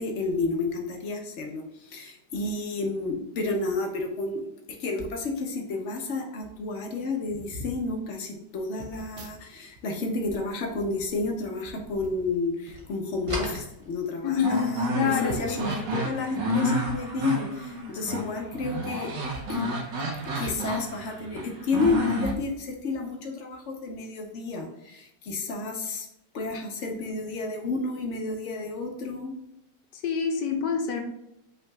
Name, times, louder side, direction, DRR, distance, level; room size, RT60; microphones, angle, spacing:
voice 1, 0.0-4.5 4.8-19.1 19.5-19.7 20.3-26.1 26.3-29.3, left 3 dB, 55° left, 2 dB, 0.8 m, -31 dB
sound 1, 4.9-5.2 6.1-6.2 6.4-6.7 7.2-7.8 8.8-9.8 10.1-11.5 12.0-12.3 13.1-13.5 14.0-14.1 14.4-14.5 15.2-15.7 16.8-17.0 18.4-18.6 19.2-20.7 21.0-21.1 21.8-23.0 23.5-23.7, right 1 dB, 60° right, 1.0 m, -43 dB
sound 2, 10.2-12.4 12.6-14.5, right 1 dB, 30° right, 0.6 m, -39 dB
voice 2, 14.2-15.6 29.9-31.0, left 6 dB, 75° left, 4 dB, 1.2 m, -27 dB
sound 3, 14.4-22.3, equal, 85° right, 1.5 m, -30 dB
5.4 x 3.9 x 2.3 m, 0.85 s
omnidirectional pair, 1.9 m